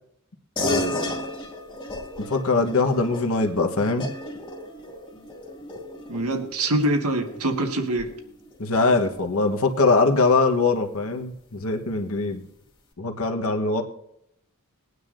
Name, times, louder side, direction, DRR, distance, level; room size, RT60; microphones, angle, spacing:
voice 1, 0.6-1.2 2.2-4.1 8.6-12.4 13.0-13.8, left 3 dB, 65° left, 4 dB, 1.2 m, -22 dB
sound 1, 0.6-10.4, left 1 dB, 25° left, 1.8 m, -35 dB
voice 2, 6.1-8.1, right 1 dB, 80° right, 4 dB, 1.6 m, -24 dB
21.0 x 9.4 x 2.6 m, 0.79 s
head